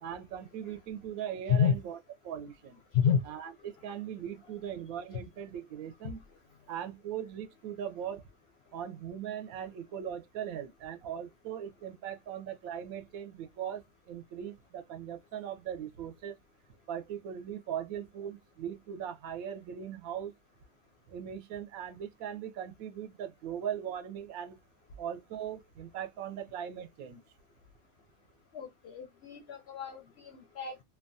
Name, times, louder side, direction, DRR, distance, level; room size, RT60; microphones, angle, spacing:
voice 1, 0.0-2.0 2.2-2.8 3.3-6.2 6.7-8.2 8.7-16.4 16.9-20.3 21.1-24.6 25.0-27.2, right 9 dB, 80° right, 1.0 m, -39 dB
voice 2, 28.5-30.8, left 7 dB, 65° left, 0.6 m, -29 dB
2.8 x 2.2 x 2.5 m
omnidirectional pair, 1.5 m